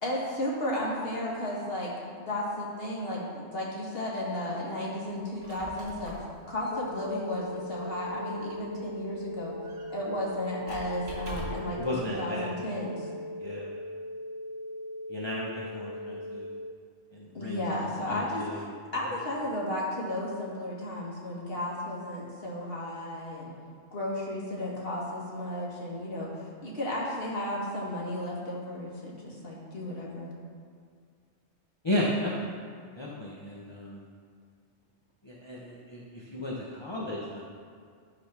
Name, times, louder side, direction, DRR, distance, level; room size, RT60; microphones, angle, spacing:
voice 1, 0.0-1.9 2.2-6.1 6.5-9.6 9.9-13.1 17.3-18.7 18.9-23.5 23.9-26.3 26.6-30.3, left 1 dB, 50° left, -4 dB, 2.0 m, -33 dB
Squeak, 5.2-11.8, right 1 dB, 45° right, 2.0 m, -46 dB
sound 1, 6.7-16.7, left 1 dB, 90° left, 0.9 m, -39 dB
voice 2, 11.8-12.5 13.4-13.7 15.1-16.5 17.1-17.6 18.1-18.6 31.8-32.5 33.0-34.0 35.2-37.4, left 1 dB, 25° left, -5 dB, 0.9 m, -34 dB
11.5 x 4.1 x 5.9 m, 2.1 s
omnidirectional pair, 1.2 m